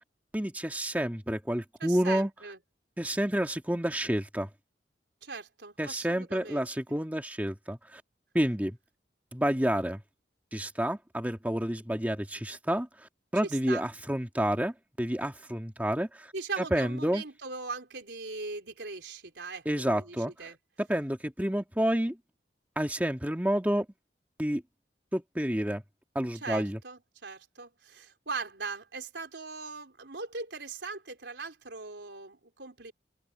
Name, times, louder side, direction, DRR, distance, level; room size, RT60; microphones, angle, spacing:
voice 1, 0.3-2.3 3.0-4.5 5.8-8.0 8.3-8.8 9.3-10.0 10.5-16.3 16.6-17.2 19.7-20.3 20.9-22.2 22.8-23.9 24.4-24.6 25.1-25.8 26.2-26.8, equal, 10° right, 1.8 m, -29 dB
voice 2, 1.8-2.6 5.2-6.7 13.4-13.8 16.3-20.6 26.3-32.9, right 4 dB, 70° right, 4.1 m, -40 dB
open air
head